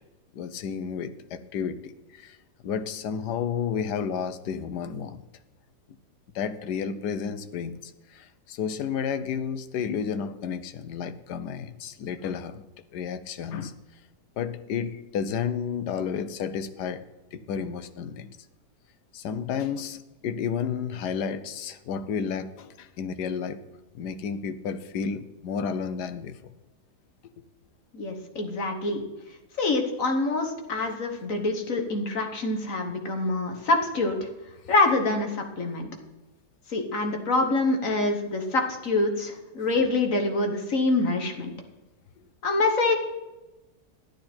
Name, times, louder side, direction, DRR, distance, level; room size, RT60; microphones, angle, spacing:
voice 1, 0.3-2.4 2.6-5.2 6.3-12.6 12.9-13.7 14.4-17.0 17.3-18.3 19.1-23.6 23.9-26.4 39.8-39.9 41.5-41.6, left 7 dB, 90° left, 11 dB, 1.4 m, -31 dB
voice 2, 27.9-29.0 29.6-34.3 34.7-35.9 36.7-41.5 42.4-42.9, left 2 dB, 55° left, 4 dB, 1.6 m, -25 dB
13.0 x 11.5 x 4.4 m, 1.1 s
omnidirectional pair, 1.7 m